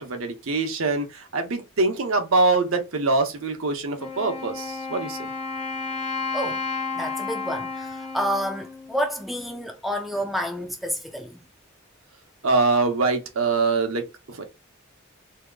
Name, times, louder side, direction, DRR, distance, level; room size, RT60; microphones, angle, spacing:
voice 1, 0.0-5.3 12.4-14.4, right 3 dB, 85° right, 0.8 m, -24 dB
Wind instrument woodwind instrument, 4.0-9.7, left 4 dB, 35° left, 0.7 m, -32 dB
voice 2, 6.3-6.6 6.9-11.4, equal, ahead, 0.4 m, -29 dB
3.6 x 2.8 x 2.3 m
head